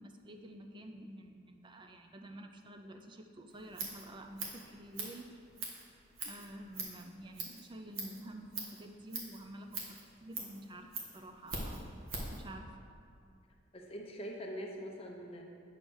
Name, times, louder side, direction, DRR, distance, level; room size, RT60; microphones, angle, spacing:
voice 1, 0.0-5.4 6.2-10.9 11.1-11.9 12.3-12.7, right 1 dB, 25° right, 4 dB, 0.4 m, -49 dB
Scissors, 3.5-12.4, right 3 dB, 85° right, 1.3 m, -44 dB
voice 2, 13.7-15.4, equal, 30° left, 0 dB, 0.8 m, -43 dB
8.7 x 3.3 x 6.2 m, 2.3 s
head